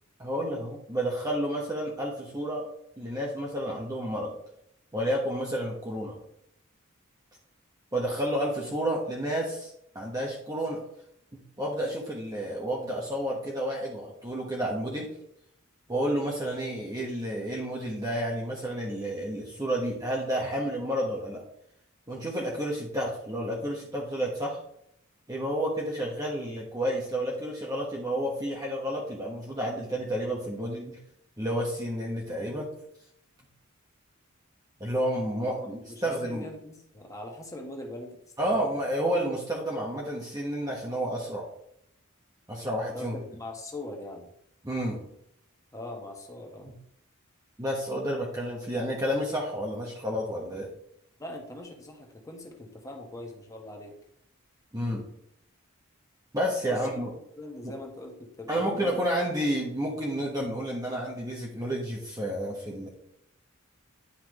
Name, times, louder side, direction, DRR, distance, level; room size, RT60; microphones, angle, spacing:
voice 1, 0.2-2.6 3.0-4.3 4.9-6.2 7.9-10.8 11.3-15.1 15.9-21.4 22.1-24.6 25.3-31.0 31.4-32.7 34.8-36.5 38.4-41.4 42.5-43.2 44.6-45.0 46.6-46.7 47.6-50.7 54.7-55.0 56.3-57.1 57.6-57.8 58.5-62.9, equal, 20° right, -3 dB, 1.3 m, -30 dB
voice 2, 35.3-38.7 42.9-44.3 45.7-46.7 51.2-53.9 56.6-57.0 57.4-59.0, left 1 dB, 15° left, 1 dB, 1.5 m, -42 dB
10.0 x 5.6 x 3.2 m, 0.72 s
head